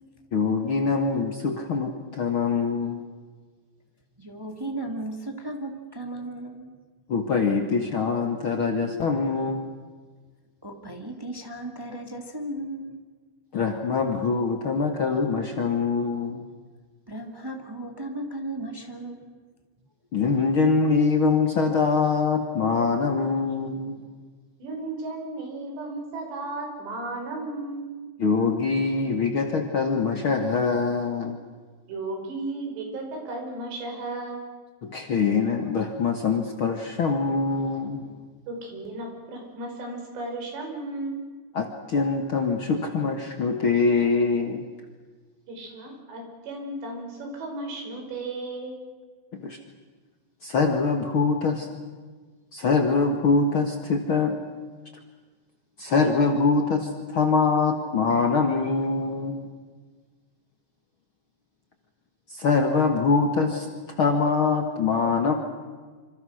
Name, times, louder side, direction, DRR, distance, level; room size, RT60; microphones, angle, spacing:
voice 1, 0.3-3.0 7.1-9.7 13.5-16.4 20.1-24.0 28.2-31.4 34.9-38.0 41.5-44.7 49.3-49.6 50.4-51.7 52.5-54.4 55.8-59.4 62.3-63.7 64.0-65.3, left 4 dB, 80° left, 4 dB, 1.1 m, -24 dB
voice 2, 4.2-6.7 10.6-13.0 17.1-19.4, right 1 dB, 20° right, 3 dB, 0.7 m, -35 dB
voice 3, 24.6-27.9 31.9-34.5 38.5-41.2 45.5-48.8, right 2 dB, 75° right, 2 dB, 7.5 m, -34 dB
26.5 x 26.5 x 6.5 m, 1.5 s
omnidirectional pair, 5.0 m